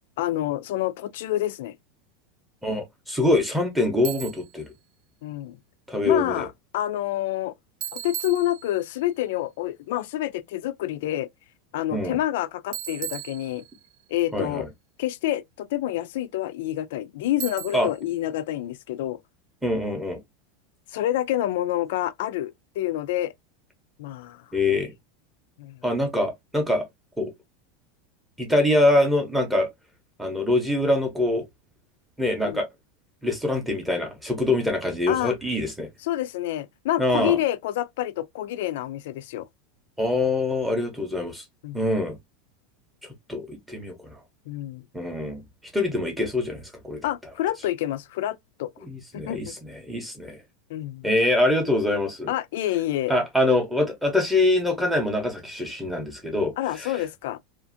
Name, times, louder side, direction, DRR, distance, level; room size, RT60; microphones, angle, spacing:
voice 1, 0.2-1.7 5.2-5.6 6.0-6.5 6.7-7.5 7.9-11.3 11.7-13.6 14.1-14.7 15.0-19.2 20.9-23.3 24.0-24.4 24.7-24.8 25.6-25.8 32.4-32.6 35.1-35.4 36.0-39.5 41.6-41.8 44.5-44.9 47.0-48.7 49.1-49.6 50.7-51.1 52.3-53.2 56.6-57.4, left 13 dB, 65° left, 0.3 m, -28 dB
voice 2, 2.6-4.7 5.9-6.5 11.9-12.2 14.3-14.6 17.7-17.9 19.6-20.2 24.5-24.9 25.8-26.8 27.2-27.3 28.4-29.7 30.2-31.4 32.2-32.7 33.2-35.9 37.0-37.4 40.0-41.4 41.7-42.2 43.3-44.2 44.9-45.4 45.7-47.0 48.8-50.4 51.0-52.3 53.1-56.9, left 2 dB, 5° right, 0.7 m, -24 dB
Bicycle, 4.0-4.6 7.8-9.0 12.7-14.0 17.4-18.1, right 11 dB, 50° right, 0.5 m, -36 dB
2.5 x 2.4 x 2.5 m
supercardioid pair, 165°, 0 cm